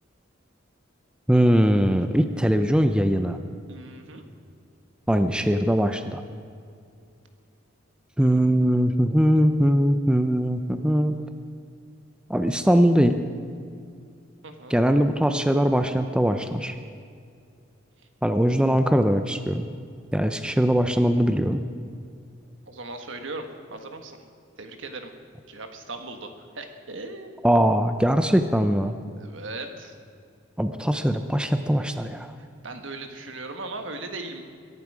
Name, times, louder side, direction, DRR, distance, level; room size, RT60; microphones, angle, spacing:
voice 1, 1.3-3.4 5.1-6.2 8.2-11.1 12.3-13.2 14.7-16.8 18.2-19.7 20.1-21.6 27.4-28.9 30.6-32.3, equal, 5° right, 8 dB, 0.5 m, -21 dB
voice 2, 3.7-4.2 14.4-14.8 22.7-24.2 24.6-25.1 25.5-27.4 29.2-29.9 32.6-34.4, right 2 dB, 70° right, 5 dB, 1.5 m, -38 dB
22.5 x 11.0 x 4.9 m, 2.3 s
head